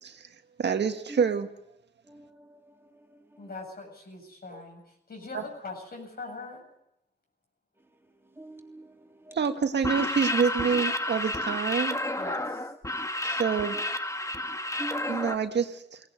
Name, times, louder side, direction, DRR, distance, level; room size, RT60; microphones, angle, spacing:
voice 1, 0.6-1.5 5.3-5.4 9.3-12.0 13.2-13.8 15.1-16.0, right 6 dB, 80° right, 7 dB, 1.7 m, -27 dB
voice 2, 2.1-2.6 3.3-3.4 4.5-4.6 5.2-5.3 8.4-8.9 9.2-9.4 14.8-15.3, right 1 dB, 15° right, 2 dB, 3.4 m, -43 dB
voice 3, 3.4-4.8 5.1-6.6 12.2-12.7, left 3 dB, 60° left, 2 dB, 7.9 m, -41 dB
sound 1, 9.7-15.4, left 1 dB, 15° left, 1.4 m, -31 dB
19.5 x 18.0 x 9.6 m, 0.79 s
wide cardioid pair, 80°, 18 cm